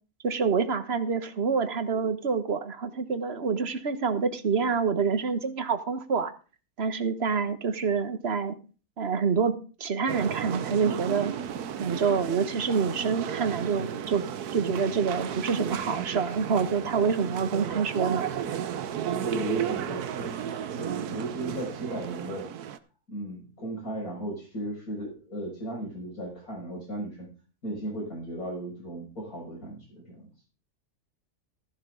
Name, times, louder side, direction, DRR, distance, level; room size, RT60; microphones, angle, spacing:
voice 1, 0.2-6.3 6.8-8.6 9.0-11.3 11.8-14.2 14.5-18.2, right 5 dB, 45° right, 10 dB, 1.3 m, -27 dB
sound 1, 10.1-22.8, right 9 dB, 85° right, 1.4 m, -33 dB
voice 2, 19.2-20.4 20.8-22.5 23.1-27.3 27.6-30.3, right 1 dB, 65° left, -1 dB, 6.6 m, -36 dB
14.5 x 10.5 x 3.8 m, 0.35 s
omnidirectional pair, 1.6 m